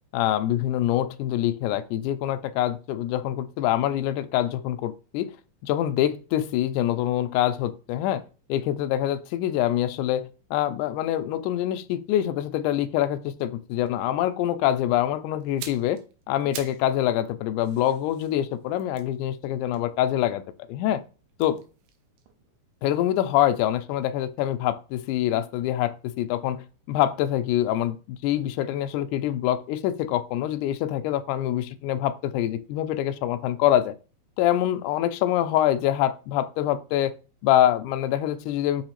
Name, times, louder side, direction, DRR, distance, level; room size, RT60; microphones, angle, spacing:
voice 1, 0.1-5.3 5.6-8.2 8.5-16.0 16.3-20.4 20.7-21.0 21.4-21.6 22.8-33.9 34.4-37.1 37.4-38.8, left 12 dB, 80° left, 1.9 m, -25 dB
sound 1, 15.4-16.9 17.2-20.5 21.3-23.3 23.6-23.8, right 8 dB, 80° right, 2.1 m, -45 dB
6.2 x 2.9 x 2.9 m
omnidirectional pair, 3.9 m